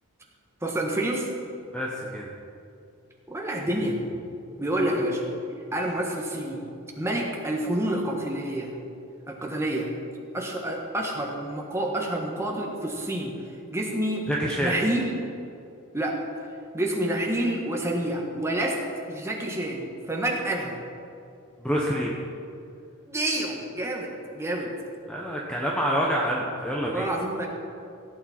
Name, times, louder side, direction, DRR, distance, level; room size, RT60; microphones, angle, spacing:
voice 1, 0.6-1.3 3.3-4.0 4.6-5.2 5.7-6.6 7.0-8.7 9.3-9.9 10.3-13.3 13.7-14.3 14.6-15.1 15.9-16.2 16.7-18.8 19.1-20.7 23.1-24.7 26.7-27.5, right 1 dB, 10° right, -1 dB, 1.6 m, -28 dB
voice 2, 1.7-2.3 14.3-14.7 21.6-22.1 25.1-27.1, equal, 5° left, -3 dB, 0.9 m, -27 dB
16.5 x 8.9 x 4.4 m, 2.6 s
head